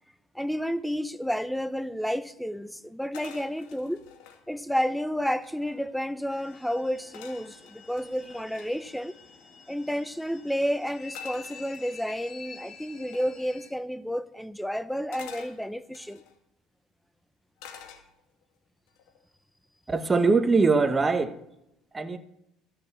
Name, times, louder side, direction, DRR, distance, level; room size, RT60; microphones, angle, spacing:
voice 1, 0.3-4.0 4.5-9.1 9.7-16.2, equal, ahead, 0.7 m, -31 dB
sound 1, 3.1-4.4 5.0-5.1 5.3-5.9 7.1-8.7 11.1-12.2 13.1-13.4 15.1-16.3 17.6-18.4 18.9-19.2, left 8 dB, 80° left, 2.0 m, -48 dB
sound 2, 6.3-13.7, left 5 dB, 45° left, 2.7 m, -47 dB
voice 2, 19.9-21.4 21.9-22.2, right 4 dB, 20° right, 1.3 m, -22 dB
13.5 x 7.9 x 7.3 m
supercardioid pair, 90°, 0 cm